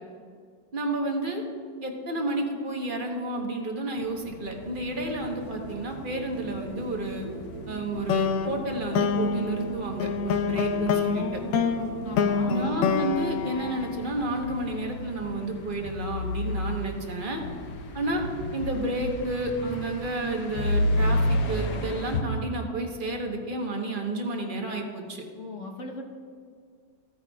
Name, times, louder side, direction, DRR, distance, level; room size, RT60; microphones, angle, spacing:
voice 1, 0.7-1.4 1.8-7.3 7.7-11.4 12.5-17.4 17.9-18.2 18.5-25.2, right 1 dB, 30° right, 2 dB, 1.2 m, -31 dB
sound 1, 4.0-22.2, left 1 dB, 70° left, 1.3 m, -33 dB
sound 2, 5.2-12.5, right 4 dB, 80° right, 1.9 m, -43 dB
sound 3, 8.1-14.5, left 5 dB, 85° left, 1.4 m, -27 dB
voice 2, 12.0-12.5 25.4-26.0, left 3 dB, 50° left, 2 dB, 1.2 m, -38 dB
15.5 x 9.2 x 2.4 m, 2.1 s
omnidirectional pair, 1.9 m